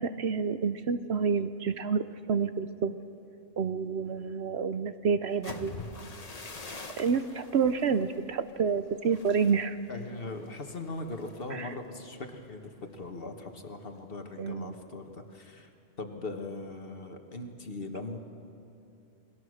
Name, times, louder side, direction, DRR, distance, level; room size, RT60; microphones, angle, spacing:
voice 1, 0.0-3.0 3.6-5.7 7.0-9.8 11.5-11.7 14.4-14.7, right 6 dB, 60° right, 11 dB, 0.9 m, -29 dB
sound 1, 5.3-13.1 13.5-13.8 14.2-14.6, left 3 dB, 30° left, 1.3 m, -47 dB
voice 2, 9.9-15.7 16.0-18.2, left 2 dB, 50° left, 5 dB, 1.8 m, -40 dB
28.5 x 20.5 x 6.5 m, 2.7 s
omnidirectional pair, 1.3 m